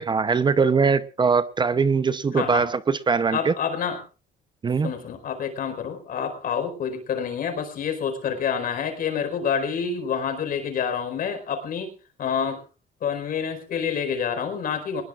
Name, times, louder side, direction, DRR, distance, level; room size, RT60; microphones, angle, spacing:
voice 1, 0.0-3.5 4.6-4.9, right 5 dB, 25° right, 0.8 m, -21 dB
voice 2, 2.3-2.7 3.3-4.0 4.8-11.9 12.2-12.6 13.0-15.0, left 7 dB, 55° left, 4.6 m, -28 dB
21.5 x 20.0 x 2.5 m
cardioid pair, 110°, 17 cm